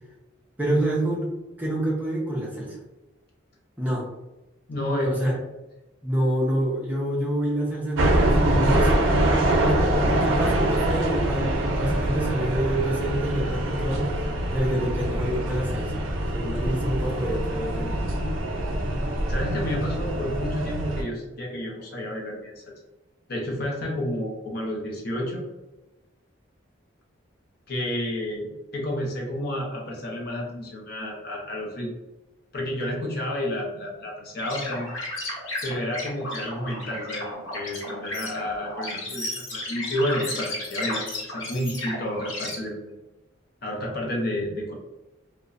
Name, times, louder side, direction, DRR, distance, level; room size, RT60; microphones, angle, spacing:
voice 1, 0.6-1.3 1.6-2.8 3.8-4.1 5.0-5.3 6.0-8.9 9.3-14.1 14.5-16.0 16.3-18.0, right 1 dB, 10° right, -5 dB, 0.6 m, -27 dB
voice 2, 4.7-5.1 9.5-9.6 18.9-22.6 23.3-25.5 27.7-31.9 32.5-34.9 35.6-43.0 43.6-44.7, left 1 dB, 50° left, -1 dB, 0.6 m, -30 dB
sound 1, 8.0-21.0, right 1 dB, 75° right, 0.4 m, -24 dB
sound 2, 34.4-42.6, left 2 dB, 85° left, 0.9 m, -34 dB
2.8 x 2.1 x 2.4 m, 1.0 s
head